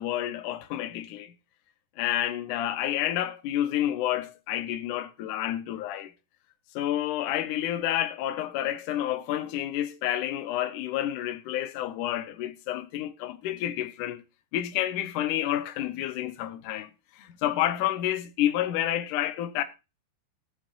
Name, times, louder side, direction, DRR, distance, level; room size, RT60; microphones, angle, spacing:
voice 1, 0.0-1.3 2.0-6.1 6.7-14.2 14.5-16.9 17.2-19.6, left 12 dB, 85° left, 1.8 m, -29 dB
18.0 x 7.2 x 2.4 m
omnidirectional pair, 5.0 m